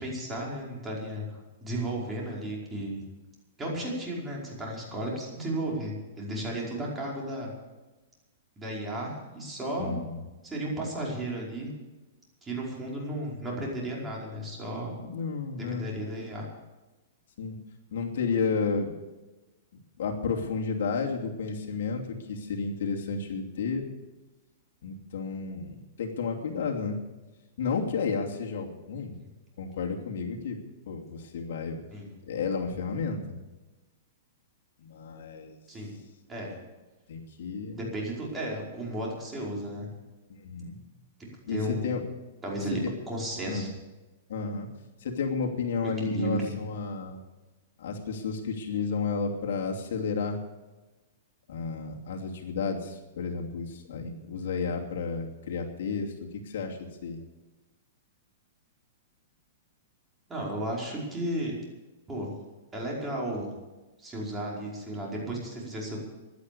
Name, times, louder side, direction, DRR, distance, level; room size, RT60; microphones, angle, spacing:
voice 1, 0.0-3.0 3.6-7.5 8.6-10.0 10.4-11.7 12.4-14.9 15.6-16.4 31.9-32.1 35.7-36.0 36.3-36.6 37.7-39.9 41.5-42.0 42.4-43.7 45.8-46.5 60.3-61.5 62.1-62.3 62.7-63.5 64.0-66.0, right 1 dB, 15° right, -3 dB, 5.0 m, -34 dB
voice 2, 9.8-10.2 15.0-15.9 17.4-17.6 17.9-18.9 20.0-23.9 24.8-27.0 27.6-29.1 29.6-30.6 30.9-31.8 32.2-33.4 34.8-35.6 37.1-37.9 40.3-40.8 41.5-42.0 43.5-43.7 44.3-44.7 45.0-47.2 47.8-50.4 51.5-56.1 56.4-57.2, left 5 dB, 70° left, 1 dB, 2.7 m, -32 dB
16.5 x 11.5 x 6.8 m, 1.1 s
hypercardioid pair, 150°, 0 cm